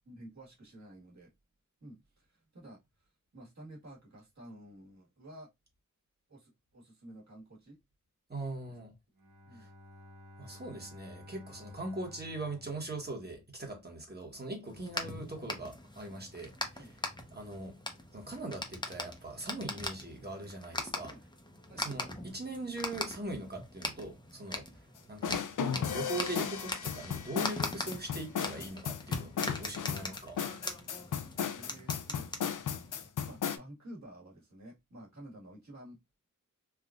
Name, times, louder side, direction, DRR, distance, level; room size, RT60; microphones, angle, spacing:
voice 1, 0.1-1.3 1.8-5.5 6.3-7.8 9.5-9.7 16.8-17.0 21.1-21.2 21.7-21.8 31.6-32.6 33.2-36.0, right 1 dB, 60° right, 1.6 m, -51 dB
voice 2, 8.3-8.9 9.5-9.7 10.4-16.9 17.3-17.8 18.1-21.1 21.7-24.7 25.1-25.4 25.7-30.4, right 2 dB, 30° right, 1.2 m, -41 dB
Bowed string instrument, 9.1-13.9, left 1 dB, 90° right, 1.0 m, -54 dB
sound 1, 14.7-33.1, left 1 dB, 15° left, 0.7 m, -41 dB
sound 2, 25.2-33.6, left 7 dB, 75° left, 0.5 m, -35 dB
3.5 x 2.4 x 2.4 m
wide cardioid pair, 65°, 31 cm